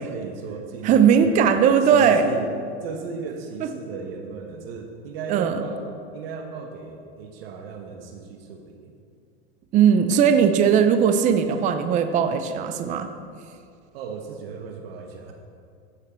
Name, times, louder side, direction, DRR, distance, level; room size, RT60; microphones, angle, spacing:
voice 1, 0.0-8.9 13.9-15.3, right 5 dB, 65° right, 3 dB, 1.2 m, -36 dB
voice 2, 0.8-2.2 3.6-3.7 5.3-5.6 9.7-13.1, right 7 dB, 25° right, 8 dB, 0.6 m, -18 dB
14.5 x 6.5 x 4.4 m, 2.4 s
supercardioid pair, 140°, 31 cm